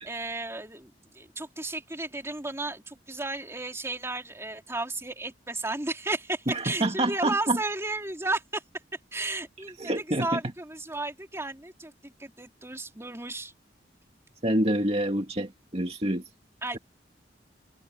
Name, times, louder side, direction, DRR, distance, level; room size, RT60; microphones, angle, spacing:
voice 1, 0.0-8.6 9.1-13.5 16.6-16.8, right 2 dB, 15° right, 3.1 m, -33 dB
voice 2, 6.5-7.6 9.8-10.4 14.4-16.2, right 1 dB, 35° right, 2.3 m, -27 dB
head